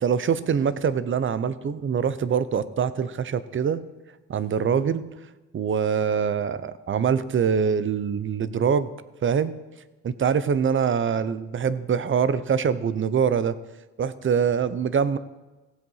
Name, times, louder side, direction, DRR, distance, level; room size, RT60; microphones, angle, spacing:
voice 1, 0.0-3.8 4.3-5.0 5.5-8.9 9.2-9.5 10.0-13.6 14.0-15.2, right 7 dB, 40° right, 15 dB, 0.7 m, -24 dB
15.5 x 7.9 x 5.6 m, 1.2 s
cardioid pair, 90°, 30 cm